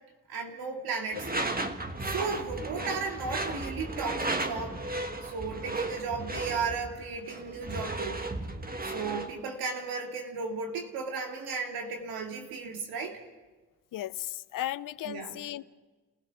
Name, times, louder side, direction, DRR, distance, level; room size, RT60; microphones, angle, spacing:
voice 1, 0.3-1.3 2.0-4.8 5.2-8.2 8.8-13.2 15.0-15.4, right 4 dB, 80° right, 2 dB, 2.4 m, -35 dB
Door / Screech, 1.1-9.4, right 2 dB, 25° right, 1.7 m, -35 dB
voice 2, 13.9-15.6, left 13 dB, 65° left, 17 dB, 0.6 m, -35 dB
29.5 x 16.5 x 6.1 m, 1.2 s
supercardioid pair, 45°, 36 cm